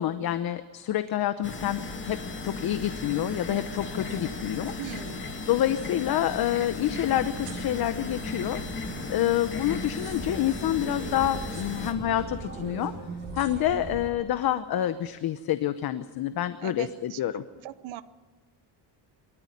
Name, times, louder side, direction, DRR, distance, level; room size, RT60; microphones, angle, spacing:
voice 1, 0.0-2.2 2.4-4.7 5.5-8.6 9.1-12.9 13.3-17.4, left 12 dB, 55° left, 11 dB, 0.9 m, -27 dB
sound 1, 1.4-11.9, left 3 dB, 25° left, 2.1 m, -36 dB
sound 2, 4.0-5.7 5.9-6.0 6.3-6.9 7.2-7.8 8.7-8.9 9.2-10.3 11.4-12.0 13.2-14.0 14.4-14.6, right 9 dB, 70° right, 4.3 m, -53 dB
voice 2, 4.8-5.2 16.6-17.2 17.6-18.0, right 14 dB, 90° right, 12 dB, 1.0 m, -39 dB
sound 3, 7.0-14.1, right 3 dB, 20° right, 6.1 m, -40 dB
23.5 x 14.0 x 9.8 m, 1.3 s
cardioid pair, 145°, 45 cm